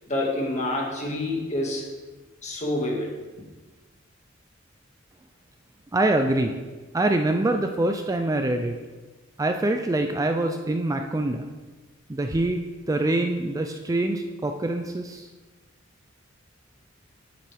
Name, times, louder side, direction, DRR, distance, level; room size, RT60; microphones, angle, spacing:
voice 1, 0.1-1.9 2.4-3.2, left 1 dB, 35° left, -2 dB, 1.9 m, -27 dB
voice 2, 5.9-6.6 6.9-8.8 9.4-11.5 12.1-15.3, right 2 dB, 15° right, 5 dB, 0.4 m, -25 dB
9.3 x 9.0 x 3.4 m, 1.3 s
head